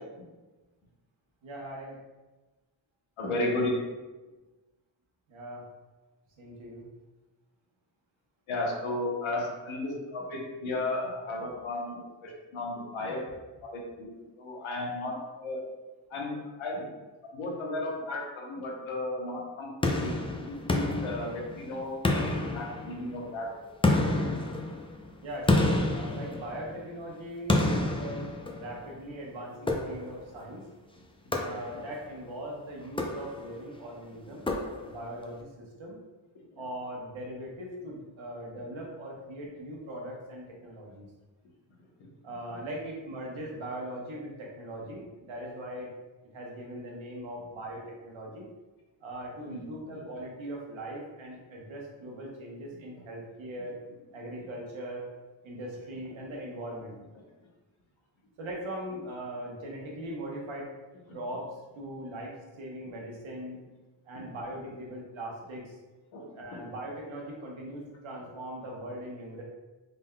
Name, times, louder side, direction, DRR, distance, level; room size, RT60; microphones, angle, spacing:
voice 1, 1.4-2.0 3.2-3.4 5.3-5.6 6.4-6.8 25.2-30.6 31.4-34.5 34.8-35.5 35.8-36.0 36.6-41.1 42.2-45.9 46.3-48.5 49.0-53.8 54.1-55.1 55.4-56.9 58.4-60.7 61.1-62.3 62.6-63.6 64.1-65.8 66.3-69.4, right 1 dB, 75° right, -1 dB, 1.1 m, -40 dB
voice 2, 3.2-3.7 8.5-13.2 13.6-15.6 16.1-16.8 17.2-20.1 20.4-23.5 31.5-31.6 49.5-49.6 50.0-50.1 64.1-64.4 66.1-66.2 66.5-66.6, left 2 dB, 85° left, -1 dB, 1.1 m, -34 dB
sound 1, 19.8-21.6 22.0-23.2 23.8-26.9 27.5-28.9 29.7-30.3 31.3-32.0 32.8-33.6 34.5-35.1, left 2 dB, 10° left, 0.5 m, -29 dB
3.9 x 3.7 x 2.2 m, 1.2 s
cardioid pair, 70°, 47 cm